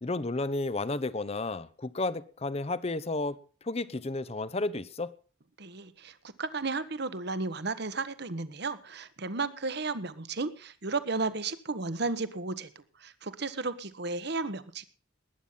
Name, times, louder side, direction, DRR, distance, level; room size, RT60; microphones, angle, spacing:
voice 1, 0.0-3.4 3.6-5.1, left 2 dB, 30° left, 0.7 m, -32 dB
voice 2, 5.6-14.8, right 3 dB, 55° right, 1.2 m, -34 dB
20.0 x 9.2 x 5.7 m
head